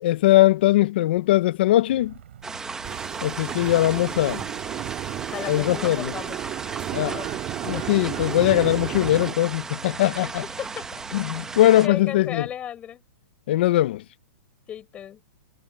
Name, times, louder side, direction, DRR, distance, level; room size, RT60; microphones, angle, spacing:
voice 1, 0.0-2.1 3.2-4.4 5.5-6.1 6.9-7.2 7.6-10.4 11.1-12.4 13.5-14.0, left 15 dB, 50° left, 0.7 m, -20 dB
sound 1, 1.9-12.0, right 11 dB, 65° right, 5.7 m, -47 dB
sound 2, 2.4-11.9, right 4 dB, 5° right, 1.0 m, -36 dB
sound 3, 2.8-9.3, right 14 dB, 25° right, 1.9 m, -33 dB
voice 2, 5.3-6.4 7.0-7.4 7.7-7.9 10.1-11.0 11.8-13.0 14.7-15.2, left 10 dB, 15° left, 4.7 m, -35 dB
hypercardioid pair, 160°, 7 cm